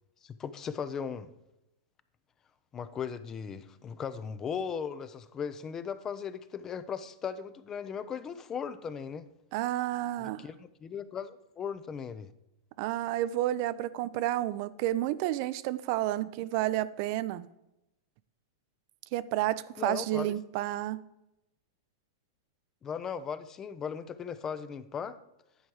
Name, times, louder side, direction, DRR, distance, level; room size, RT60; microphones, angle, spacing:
voice 1, 0.2-1.3 2.7-9.3 10.2-12.3 19.8-20.3 22.8-25.2, left 7 dB, 25° left, 14 dB, 0.4 m, -37 dB
voice 2, 9.5-10.5 12.8-17.5 19.1-21.0, right 14 dB, 50° right, 16 dB, 0.3 m, -30 dB
10.0 x 4.5 x 4.7 m, 0.90 s
hypercardioid pair, 115°, 2 cm